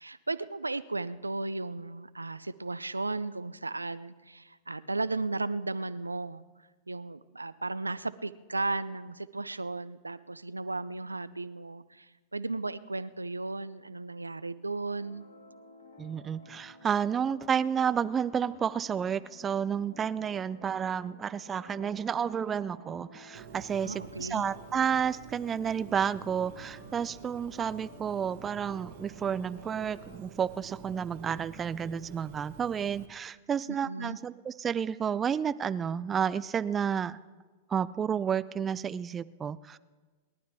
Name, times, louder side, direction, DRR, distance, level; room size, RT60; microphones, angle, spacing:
voice 1, 0.0-6.4 6.9-15.2 23.8-24.5 33.7-34.2, right 3 dB, 90° right, 16 dB, 0.5 m, -35 dB
sound 1, 14.9-30.2, left 3 dB, 75° left, 2.9 m, -53 dB
voice 2, 16.0-37.2 37.7-39.8, right 7 dB, 25° right, 17 dB, 0.4 m, -31 dB
Bird, 23.3-33.1, right 10 dB, 55° right, 1.1 m, -49 dB
28.5 x 12.0 x 3.5 m, 1.3 s
figure-of-eight pair, 95°, 0 cm